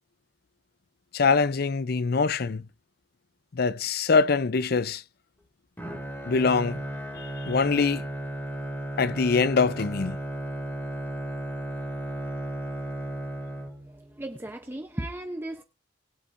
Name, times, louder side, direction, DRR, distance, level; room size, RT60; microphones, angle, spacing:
voice 1, 1.1-2.6 3.5-5.0 6.3-6.8 7.2-8.1 9.0-10.2, left 4 dB, 55° left, 0.5 m, -24 dB
Bowed string instrument, 5.8-14.1, right 1 dB, 10° left, 2.1 m, -34 dB
voice 2, 13.8-15.6, right 1 dB, 10° right, 0.7 m, -36 dB
20.5 x 8.0 x 2.6 m
head